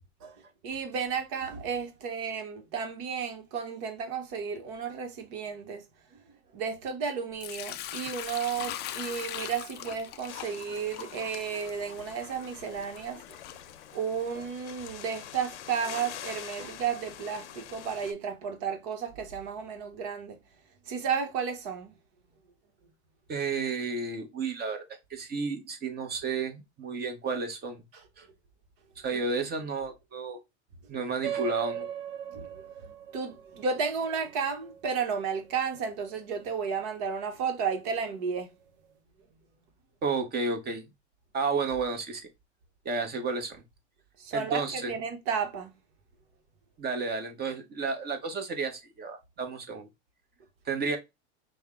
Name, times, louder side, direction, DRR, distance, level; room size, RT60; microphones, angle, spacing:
voice 1, 0.6-5.8 6.5-13.4 13.9-20.4 20.9-21.9 27.9-28.0 29.1-29.2 32.3-32.5 32.8-38.5 44.2-45.7, right 6 dB, 55° right, 1.1 m, -33 dB
Sink (filling or washing) / Liquid, 7.4-14.3, left 12 dB, 30° left, 0.4 m, -41 dB
sound 1, 10.3-18.1, left 11 dB, 85° left, 0.7 m, -45 dB
voice 2, 23.3-27.8 28.2-28.3 29.0-30.4 30.9-31.9 40.0-40.8 41.3-42.2 42.8-43.6 44.3-44.9 46.8-49.9 50.7-51.0, right 4 dB, 30° right, 1.0 m, -32 dB
sound 2, 31.2-36.2, right 10 dB, 90° right, 0.7 m, -39 dB
5.3 x 2.2 x 3.6 m
supercardioid pair, 120°, 34 cm